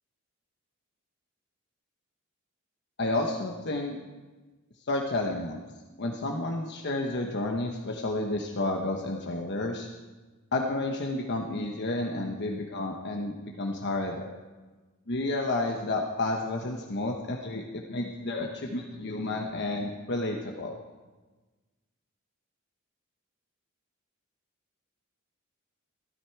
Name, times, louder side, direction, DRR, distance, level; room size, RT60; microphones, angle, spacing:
voice 1, 3.0-4.0 4.8-5.6 6.0-9.9 10.5-14.3 15.1-20.7, left 2 dB, 55° left, 2 dB, 1.1 m, -31 dB
15.0 x 13.5 x 4.6 m, 1.3 s
head